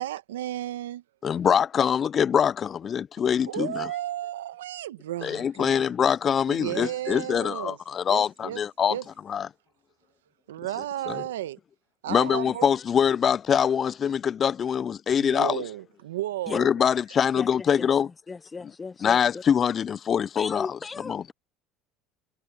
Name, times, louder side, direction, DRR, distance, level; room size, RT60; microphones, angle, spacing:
voice 1, 0.0-1.0 3.4-5.9 6.5-7.8 8.1-8.6 8.9-9.0 10.5-11.6 12.0-12.7 15.2-16.7, right 13 dB, 90° right, 1.1 m, -33 dB
voice 2, 1.2-3.9 5.2-9.0 9.3-9.5 11.1-11.2 12.1-15.6 16.5-18.1 19.0-20.8 21.0-21.2, left 8 dB, 40° left, 0.3 m, -24 dB
voice 3, 18.3-19.4 20.4-21.3, left 4 dB, 25° left, 0.9 m, -36 dB
hypercardioid pair, 80°, 0 cm